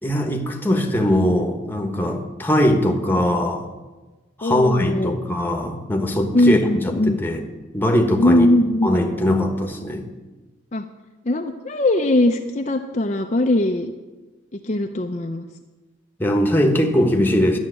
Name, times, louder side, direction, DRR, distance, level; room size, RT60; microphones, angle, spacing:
voice 1, 0.0-3.7 4.4-6.6 6.8-7.4 7.7-8.5 8.8-10.1 16.2-17.6, left 1 dB, 10° left, 4 dB, 1.2 m, -20 dB
voice 2, 4.4-5.1 6.3-7.2 8.2-8.9 10.7-10.8 11.2-13.9 14.5-15.5, left 1 dB, 35° left, 4 dB, 0.6 m, -20 dB
11.5 x 7.3 x 10.0 m, 1.2 s
head